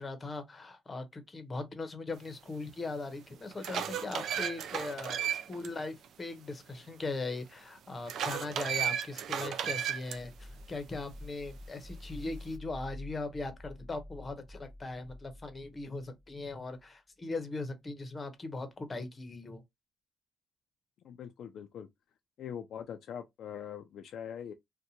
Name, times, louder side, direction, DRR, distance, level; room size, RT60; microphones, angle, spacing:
voice 1, 0.0-19.6, left 3 dB, 30° left, 0.7 m, -39 dB
sound 1, 2.7-2.8 3.3-5.7 6.0-6.1 8.1-10.2, right 9 dB, 75° right, 0.3 m, -34 dB
sound 2, 10.1-16.8, left 1 dB, 25° right, 0.9 m, -49 dB
voice 2, 21.0-21.9 22.4-24.5, left 8 dB, 70° left, 0.3 m, -42 dB
2.7 x 2.1 x 2.7 m
cardioid pair, 90°, 0 cm